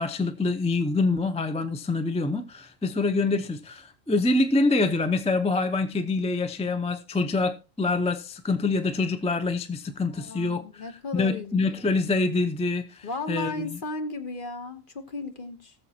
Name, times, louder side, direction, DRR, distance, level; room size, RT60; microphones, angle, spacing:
voice 1, 0.0-10.9 11.1-13.8, left 3 dB, 10° left, 0.4 m, -26 dB
voice 2, 10.1-11.5 11.8-11.9 13.0-15.7, left 2 dB, 45° left, 1.1 m, -35 dB
19.0 x 7.0 x 2.8 m
omnidirectional pair, 1.3 m